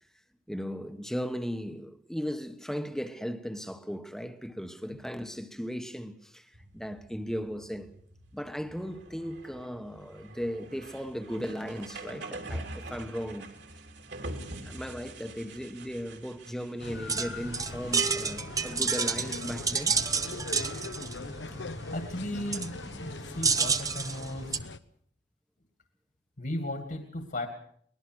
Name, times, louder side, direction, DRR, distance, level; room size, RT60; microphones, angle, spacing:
voice 1, 0.5-6.5 6.7-7.9 8.3-13.5 14.6-20.0, equal, 5° left, 1.2 m, -37 dB
sound 1, 6.5-24.5, right 1 dB, 65° right, 3.3 m, -46 dB
sound 2, 16.8-24.8, left 3 dB, 70° left, 1.0 m, -41 dB
sound 3, 16.8-24.6, right 5 dB, 20° right, 1.0 m, -31 dB
voice 2, 21.3-21.6 21.9-24.6 26.4-27.5, left 1 dB, 50° left, 2.4 m, -36 dB
23.5 x 19.5 x 6.3 m
head